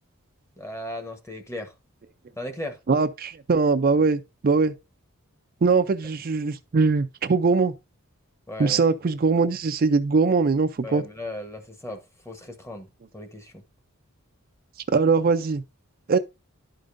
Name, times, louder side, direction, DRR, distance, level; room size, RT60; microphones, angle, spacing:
voice 1, 0.6-1.7 2.4-2.8 8.5-8.8 10.8-12.9 13.1-13.6, left 1 dB, 15° left, 1.1 m, -36 dB
voice 2, 2.9-4.7 5.6-7.7 8.6-11.0 14.9-15.6 16.1-16.2, right 4 dB, 40° right, 0.4 m, -21 dB
11.5 x 5.1 x 2.5 m
head